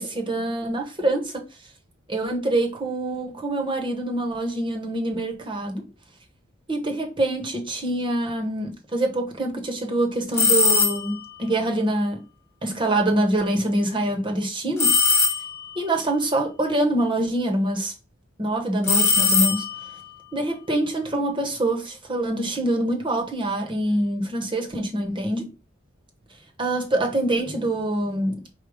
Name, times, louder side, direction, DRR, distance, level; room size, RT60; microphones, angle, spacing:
voice 1, 0.0-1.4 2.1-5.9 6.7-12.2 12.6-14.9 15.8-17.9 18.4-19.7 20.3-25.5 26.6-28.4, right 1 dB, 25° right, 0.9 m, -25 dB
sound 1, 10.3-11.3 14.8-15.8 18.8-20.0, left 4 dB, 10° left, 0.9 m, -20 dB
4.9 x 2.3 x 4.7 m
head